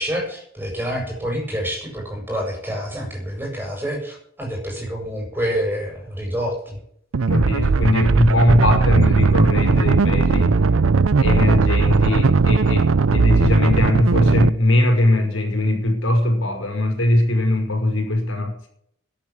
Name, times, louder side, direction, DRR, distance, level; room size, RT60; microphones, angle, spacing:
voice 1, 0.0-6.8, equal, 10° right, 0 dB, 7.8 m, -27 dB
sound 1, 7.1-14.5, right 4 dB, 85° right, 0.6 m, -18 dB
voice 2, 7.3-10.5 11.2-18.7, left 1 dB, 75° left, 3 dB, 6.0 m, -20 dB
13.0 x 10.5 x 8.7 m, 0.67 s
head